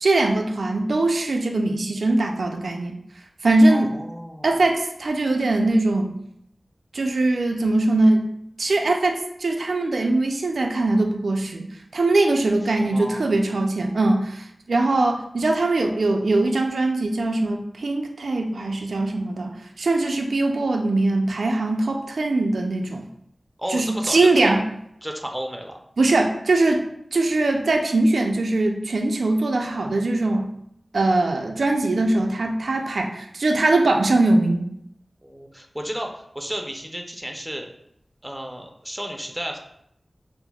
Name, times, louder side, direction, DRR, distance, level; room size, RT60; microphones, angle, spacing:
voice 1, 0.0-3.0 3.4-3.9 4.4-6.1 6.9-8.3 8.6-11.7 11.9-23.1 23.7-24.6 26.0-26.8 27.1-30.5 30.9-34.7, right 2 dB, 85° right, 3 dB, 0.4 m, -21 dB
voice 2, 3.7-4.6 12.8-13.3 23.6-24.6 25.0-25.8 35.2-37.7 38.2-39.6, equal, 5° right, 2 dB, 0.5 m, -33 dB
5.8 x 2.0 x 2.3 m, 0.75 s
wide cardioid pair, 55°, 0 cm